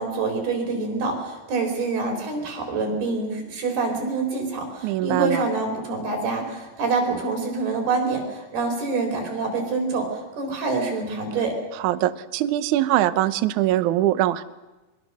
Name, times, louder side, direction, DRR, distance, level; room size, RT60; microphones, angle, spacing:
voice 1, 0.0-11.6, right 3 dB, 70° right, 2 dB, 6.3 m, -26 dB
voice 2, 4.8-5.4 11.8-14.4, right 14 dB, 90° right, 12 dB, 1.7 m, -22 dB
23.5 x 23.0 x 6.4 m, 1.1 s
omnidirectional pair, 4.7 m